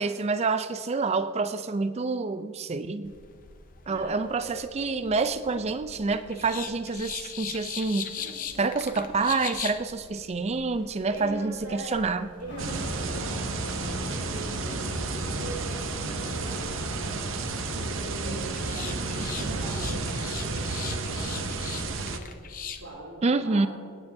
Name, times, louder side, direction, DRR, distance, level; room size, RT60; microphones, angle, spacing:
voice 1, 0.0-3.1 3.9-8.1 8.6-12.3 23.2-23.7, right 4 dB, 30° right, 11 dB, 0.4 m, -27 dB
sound 1, 3.0-22.9, left 7 dB, 40° left, 0.6 m, -42 dB
voice 2, 3.9-4.5 8.1-8.7 11.1-11.9 12.4-23.7, right 1 dB, 90° right, -9 dB, 3.1 m, -42 dB
sound 2, 12.5-21.5, equal, 55° left, 1.5 m, -38 dB
sound 3, 12.6-22.2, right 4 dB, 60° right, 0.7 m, -32 dB
24.5 x 9.2 x 2.7 m, 2.1 s
head